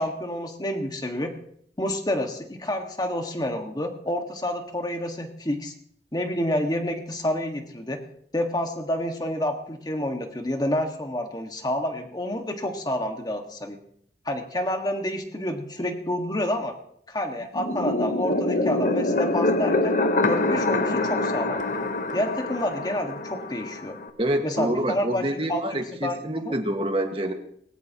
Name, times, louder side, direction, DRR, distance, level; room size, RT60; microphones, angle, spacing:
voice 1, 0.0-1.3 1.8-5.7 6.1-8.0 8.3-13.8 14.2-16.7 17.1-19.9 20.3-21.7 22.1-24.0 24.4-26.5, left 1 dB, 25° left, 4 dB, 1.7 m, -29 dB
sound 1, 17.6-24.1, left 2 dB, 50° left, 1.0 m, -25 dB
voice 2, 24.2-27.3, right 1 dB, 30° right, 4 dB, 1.7 m, -27 dB
19.5 x 17.5 x 3.0 m, 0.68 s
head